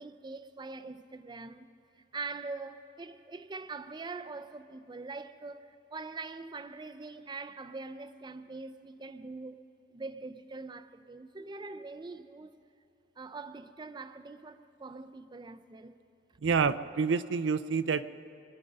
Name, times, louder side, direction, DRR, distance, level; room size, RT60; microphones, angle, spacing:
voice 1, 0.0-1.7 2.1-9.6 9.9-12.6 13.2-16.0, right 3 dB, 25° right, 0.4 m, -43 dB
voice 2, 16.4-18.1, right 5 dB, 80° right, 0.4 m, -28 dB
24.5 x 10.5 x 5.3 m
head